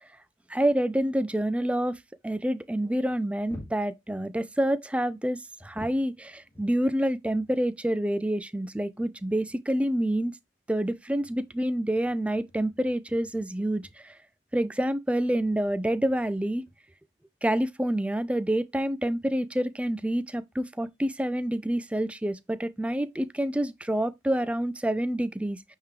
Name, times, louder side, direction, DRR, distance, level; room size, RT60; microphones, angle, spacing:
voice 1, 0.5-10.3 10.7-14.2 14.5-16.6 17.4-25.6, right 1 dB, 5° right, 0.4 m, -27 dB
sound 1, 3.0-4.6 5.6-7.6 8.0-8.1 8.6-8.7 9.0-9.6 10.9-13.5 13.8-14.1 15.4-16.8 18.0-18.1 18.3-18.5, left 1 dB, 15° left, 2.0 m, -50 dB
9.0 x 3.7 x 3.1 m
head